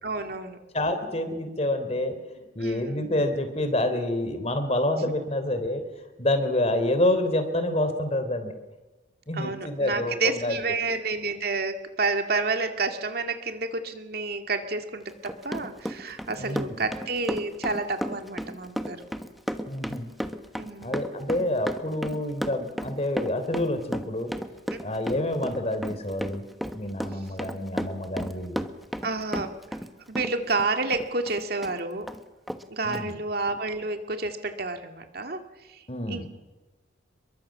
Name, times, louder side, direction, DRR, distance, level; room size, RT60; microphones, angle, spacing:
voice 1, 0.0-0.6 2.6-3.1 5.0-5.1 9.3-19.0 20.6-21.0 24.7-25.0 29.0-29.5 30.1-32.1 32.7-35.4 35.7-36.3, right 3 dB, 55° right, 6 dB, 2.2 m, -30 dB
voice 2, 0.7-5.8 6.2-8.6 9.3-10.6 16.4-16.7 19.7-20.1 20.8-24.3 24.8-26.4 26.7-28.6 32.8-33.1 35.9-36.3, left 1 dB, 35° left, 8 dB, 3.4 m, -28 dB
Run, 15.1-29.9 30.1-31.7 32.1-32.2 32.5-32.6 32.9-33.0, equal, ahead, 1.3 m, -33 dB
27.5 x 22.5 x 7.5 m, 1.2 s
head